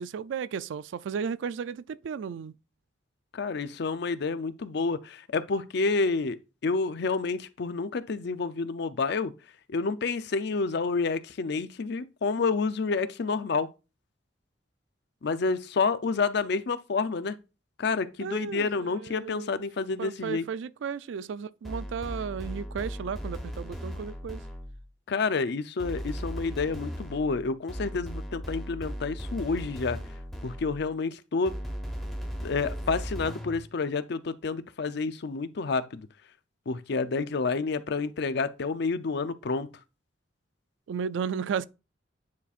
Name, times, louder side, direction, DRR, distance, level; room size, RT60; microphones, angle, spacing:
voice 1, 0.0-2.5 18.2-19.5 20.0-24.4 40.9-41.6, right 6 dB, 75° right, 0.3 m, -34 dB
voice 2, 3.3-9.3 9.7-13.7 15.2-17.4 17.8-20.5 25.1-30.0 30.4-31.5 32.4-36.1 36.7-39.7, left 4 dB, 60° left, 0.5 m, -29 dB
sound 1, 21.6-24.9 25.8-30.9 31.5-33.7, equal, ahead, 1.2 m, -37 dB
9.4 x 4.2 x 2.4 m
head